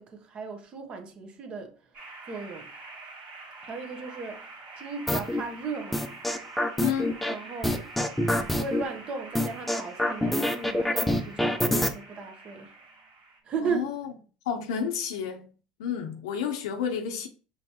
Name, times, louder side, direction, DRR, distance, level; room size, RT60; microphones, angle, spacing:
voice 1, 0.0-1.7 2.3-2.7 3.6-4.5 4.8-6.0 7.2-7.9 8.4-12.7 13.4-13.9, right 5 dB, 40° right, 1.0 m, -36 dB
sound 1, 1.9-13.4, right 3 dB, 60° right, 1.9 m, -46 dB
sound 2, 5.1-5.4 5.9-7.3 7.6-8.8 9.3-11.9, left 1 dB, 5° left, 0.6 m, -25 dB
voice 2, 6.8-7.2 13.6-14.1 14.5-15.5 15.8-17.3, left 8 dB, 85° left, 0.6 m, -30 dB
5.3 x 3.3 x 2.9 m
supercardioid pair, 95°, 3 cm